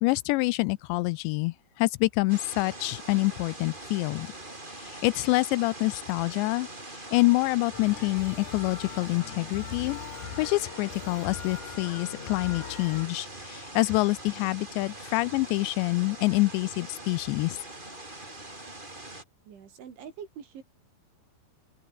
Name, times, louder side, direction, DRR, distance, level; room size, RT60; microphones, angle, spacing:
voice 1, 0.0-4.3 4.8-6.7 6.9-10.0 10.3-17.6, left 22 dB, 85° left, 2.7 m, -26 dB
sound 1, 2.3-19.2, right 2 dB, 10° right, 4.0 m, -43 dB
sound 2, 7.7-13.1, left 7 dB, 45° left, 4.0 m, -41 dB
voice 2, 19.5-20.6, right 7 dB, 80° right, 6.4 m, -44 dB
open air
omnidirectional pair, 5.3 m